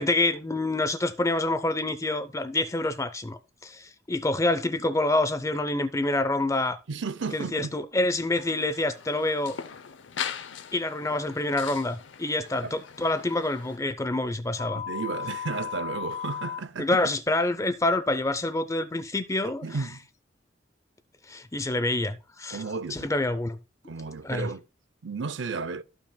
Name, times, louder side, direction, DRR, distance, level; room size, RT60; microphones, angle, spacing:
voice 1, 0.0-6.8 7.3-9.6 10.7-14.8 16.8-19.6 21.3-22.6 22.9-23.6 24.2-24.5, left 2 dB, 15° left, 0.6 m, -27 dB
voice 2, 6.9-7.7 12.6-12.8 14.8-17.0 19.4-20.1 22.5-23.1 23.8-24.6 25.0-25.8, right 4 dB, 75° right, 0.5 m, -33 dB
sound 1, 8.3-13.8, left 7 dB, 80° left, 0.7 m, -40 dB
sound 2, 14.6-16.6, left 9 dB, 40° left, 1.2 m, -35 dB
14.0 x 5.8 x 2.2 m
head